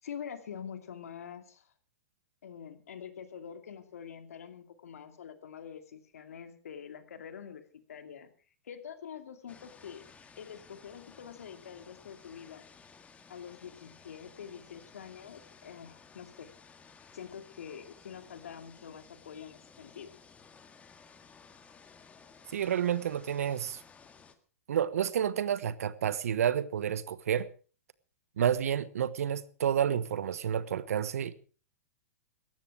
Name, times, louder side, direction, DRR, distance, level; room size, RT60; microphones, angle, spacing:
voice 1, 0.0-1.7 2.4-7.6 7.9-8.3 8.6-10.0 10.4-12.7 13.3-16.5 17.1-20.1, left 8 dB, 75° left, 2.5 m, -45 dB
sound 1, 9.5-24.4, left 5 dB, 15° left, 1.8 m, -56 dB
voice 2, 22.5-23.8 24.7-27.5 28.4-31.4, right 9 dB, 75° right, 1.2 m, -30 dB
18.0 x 13.5 x 4.7 m
hypercardioid pair, 115°, 8 cm